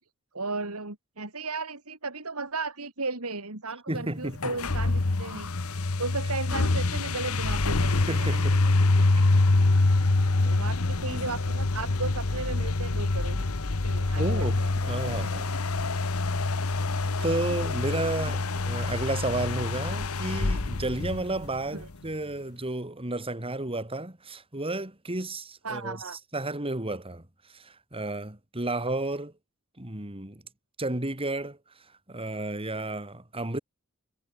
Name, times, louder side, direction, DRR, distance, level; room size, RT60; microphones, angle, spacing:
voice 1, 0.3-5.5 6.0-9.1 10.4-13.5 13.8-14.7 15.0-15.3 17.9-18.0 21.7-21.9 25.6-26.2, right 3 dB, 85° right, 4.2 m, -35 dB
voice 2, 3.9-4.5 8.1-8.6 10.0-10.2 14.1-15.6 16.9-26.0 26.3-27.2 27.5-29.3 29.8-30.4 30.8-31.6 32.1-33.6, right 2 dB, 25° right, 3.2 m, -32 dB
sound 1, 4.3-21.8, left 2 dB, 75° left, 1.2 m, -26 dB
head